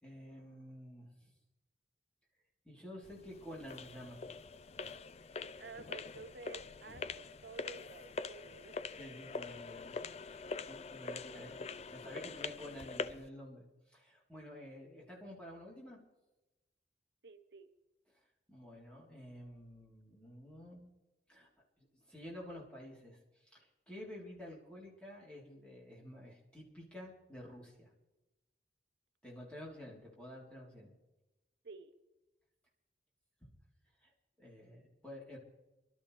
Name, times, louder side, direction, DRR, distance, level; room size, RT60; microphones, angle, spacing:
voice 1, 0.0-1.3 2.6-4.2 9.0-16.0 18.5-20.9 21.3-21.5 21.8-27.9 29.2-30.9 34.0-34.1 34.4-35.4, left 1 dB, 5° left, -4 dB, 3.6 m, -51 dB
sound 1, 3.0-13.3, left 4 dB, 35° left, 0.4 m, -44 dB
voice 2, 5.6-8.8 17.2-17.7 31.6-31.9, right 3 dB, 75° right, 9 dB, 0.8 m, -52 dB
24.0 x 12.5 x 3.3 m, 1.0 s
head